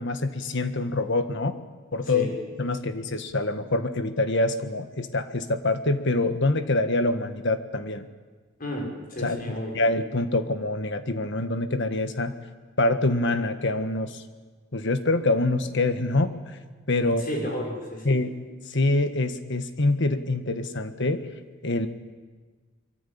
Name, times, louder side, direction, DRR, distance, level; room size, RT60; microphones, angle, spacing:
voice 1, 0.0-1.6 1.9-2.3 2.6-8.1 9.2-12.3 12.8-14.2 14.7-16.4 16.9-17.2 18.0-18.3 18.7-21.3 21.6-21.9, left 2 dB, 60° left, 9 dB, 1.6 m, -25 dB
voice 2, 2.0-2.4 8.6-9.7 17.0-18.2, left 1 dB, 40° left, 1 dB, 6.4 m, -33 dB
24.5 x 23.0 x 8.7 m, 1.4 s
head